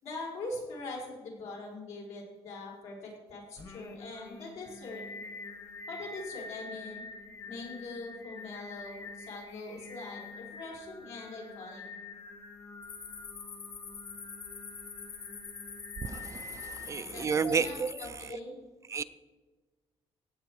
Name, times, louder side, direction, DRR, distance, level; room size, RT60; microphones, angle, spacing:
voice 1, 0.0-5.0 5.9-7.0 7.5-11.9 16.8-18.6, left 2 dB, 80° left, 4.8 m, -42 dB
Singing, 3.6-16.9, left 3 dB, 30° left, 1.3 m, -46 dB
sound 1, 12.8-18.1, left 6 dB, 55° left, 3.5 m, -45 dB
voice 2, 16.0-18.3 18.9-19.0, right 5 dB, 30° right, 0.4 m, -32 dB
16.0 x 8.6 x 4.6 m
cardioid pair, 145°, 11 cm